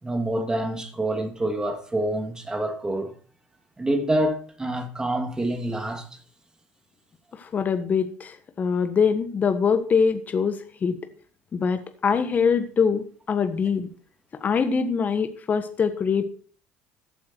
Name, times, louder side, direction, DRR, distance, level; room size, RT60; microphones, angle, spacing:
voice 1, 0.0-3.1 3.8-6.2, right 1 dB, 15° right, 2.8 m, -27 dB
voice 2, 7.4-11.0 11.5-13.9 14.4-16.2, left 6 dB, 35° left, 1.4 m, -23 dB
14.5 x 8.6 x 4.6 m
supercardioid pair, 90°, 5 cm